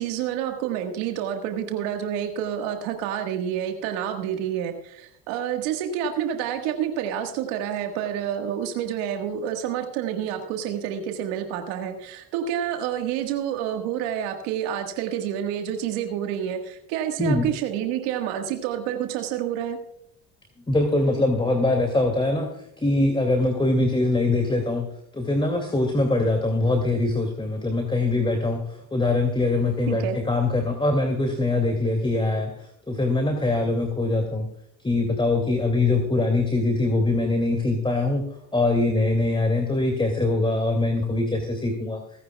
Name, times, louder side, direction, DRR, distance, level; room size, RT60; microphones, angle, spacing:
voice 1, 0.0-19.8 29.9-30.2, right 9 dB, 85° right, 5 dB, 1.6 m, -28 dB
voice 2, 17.2-17.5 20.7-24.9 25.1-28.6 28.9-32.5 32.9-34.5 34.8-38.2 38.5-42.0, left 2 dB, 10° left, 4 dB, 2.3 m, -23 dB
26.5 x 10.0 x 2.3 m, 0.73 s
supercardioid pair, 75°, 40 cm